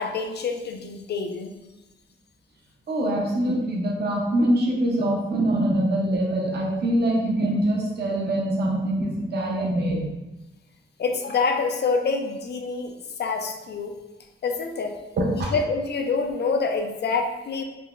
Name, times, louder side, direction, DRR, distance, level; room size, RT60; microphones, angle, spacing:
voice 1, 0.0-1.5 11.0-12.9 13.2-14.0 14.4-15.0 15.3-17.6, left 4 dB, 55° left, 5 dB, 0.4 m, -26 dB
voice 2, 2.9-10.1 15.2-15.5, right 1 dB, 55° right, -2 dB, 0.6 m, -24 dB
3.8 x 2.1 x 2.3 m, 1.0 s
wide cardioid pair, 95°, 21 cm